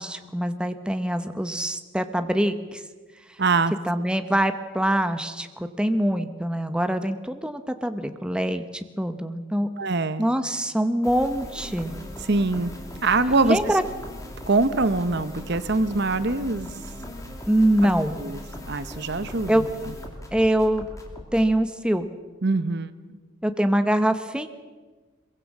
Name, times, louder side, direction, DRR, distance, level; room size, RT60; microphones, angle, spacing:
voice 1, 0.0-2.8 3.9-9.7 10.2-11.9 13.4-13.8 17.5-18.2 19.5-19.6 20.3-20.8 21.3-22.1 23.4-24.5, right 1 dB, 5° right, 8 dB, 0.9 m, -24 dB
voice 2, 3.4-3.7 9.8-10.3 12.2-12.7 13.0-13.6 14.5-16.7 17.8-17.9 18.2-18.4 18.7-19.7 22.4-22.9, right 3 dB, 50° right, 13 dB, 0.9 m, -23 dB
sound 1, 11.0-21.5, left 1 dB, 15° left, 2.9 m, -39 dB
22.5 x 22.5 x 7.3 m, 1.4 s
head